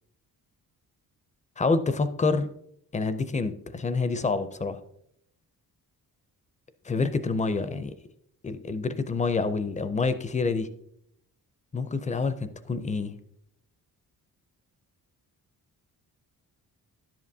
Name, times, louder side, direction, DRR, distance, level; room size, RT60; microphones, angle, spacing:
voice 1, 1.6-2.5 2.9-4.8 6.8-7.9 8.4-10.7 11.7-13.2, left 4 dB, 20° left, 12 dB, 0.4 m, -27 dB
11.0 x 7.5 x 2.7 m, 0.74 s
wide cardioid pair, 145°, 37 cm